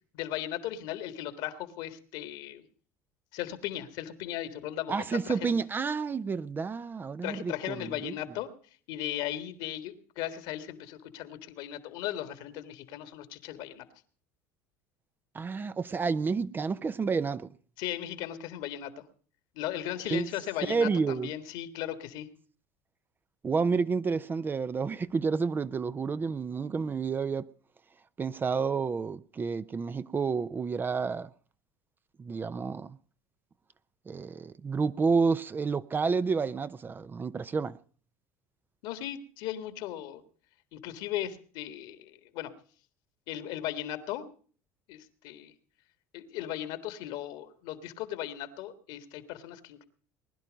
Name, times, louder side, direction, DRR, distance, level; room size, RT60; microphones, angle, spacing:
voice 1, 0.1-2.7 3.3-5.5 7.2-8.5 8.9-13.9 17.8-18.9 19.6-22.3 38.8-40.2 40.7-42.5 43.3-44.3 44.9-45.5 46.1-49.8, left 12 dB, 70° left, 1.7 m, -37 dB
voice 2, 4.9-8.1 15.3-17.5 20.1-20.3 20.7-21.3 23.4-27.5 28.2-31.3 32.2-33.0 34.1-37.8, right 5 dB, 25° right, 0.6 m, -30 dB
20.5 x 11.0 x 5.2 m
supercardioid pair, 90°, 8 cm